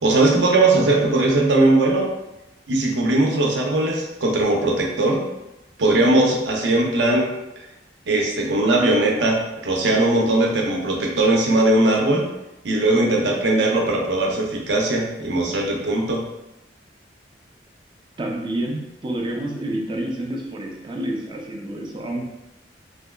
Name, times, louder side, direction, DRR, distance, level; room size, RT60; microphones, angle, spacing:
voice 1, 0.0-2.1 2.7-5.2 5.8-7.3 8.1-12.2 12.6-16.2, right 2 dB, 75° right, -1 dB, 0.6 m, -19 dB
voice 2, 18.2-22.2, right 1 dB, 25° right, 0 dB, 0.5 m, -28 dB
3.4 x 2.8 x 2.3 m, 0.95 s
head